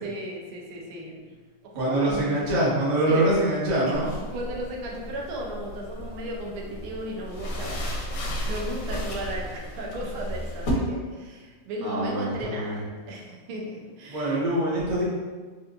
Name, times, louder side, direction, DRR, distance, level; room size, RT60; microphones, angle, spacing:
voice 1, 0.0-1.2 1.6-2.4 3.0-3.2 3.8-3.9 4.3-12.8 13.1-14.4, right 1 dB, 80° right, -1 dB, 1.5 m, -35 dB
voice 2, 1.7-4.1 11.8-12.8 14.1-15.0, right 1 dB, 40° right, -8 dB, 0.6 m, -24 dB
sound 1, 3.9-10.7, equal, 70° left, 1.2 m, -34 dB
4.4 x 2.5 x 2.7 m, 1.4 s
omnidirectional pair, 2.4 m